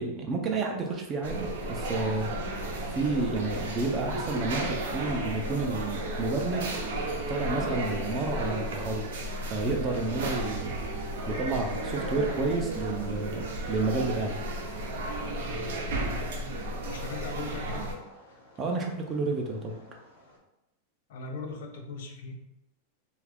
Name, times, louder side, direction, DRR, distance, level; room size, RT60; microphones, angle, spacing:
voice 1, 0.0-2.3 2.8-6.7 7.3-9.1 9.5-10.8 11.3-14.4 18.6-19.8, right 3 dB, 20° right, 2 dB, 0.4 m, -30 dB
sound 1, 1.2-17.9, right 1 dB, 75° right, 0.6 m, -33 dB
sound 2, 1.6-20.4, left 1 dB, 85° left, 0.9 m, -51 dB
voice 2, 15.4-16.2 16.9-17.9 21.1-22.3, left 4 dB, 60° left, 3 dB, 0.5 m, -39 dB
2.8 x 2.3 x 3.3 m, 0.90 s
supercardioid pair, 170°, 0 cm